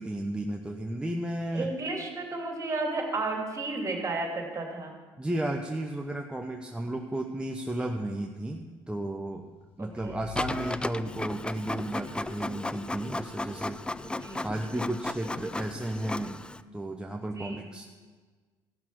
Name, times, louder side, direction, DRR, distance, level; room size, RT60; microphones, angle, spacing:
voice 1, 0.0-1.7 5.2-9.4 9.8-16.4 16.7-17.8, right 1 dB, 10° right, 2 dB, 0.8 m, -33 dB
voice 2, 1.5-4.9 9.8-10.2 14.0-14.5 17.3-17.6, right 3 dB, 30° right, 1 dB, 2.6 m, -33 dB
sound 1, 9.2-11.6, left 8 dB, 65° left, 0.9 m, -46 dB
Printer, 10.4-16.6, left 2 dB, 10° left, 0.4 m, -35 dB
14.5 x 6.1 x 6.1 m, 1.4 s
supercardioid pair, 75°, 10 cm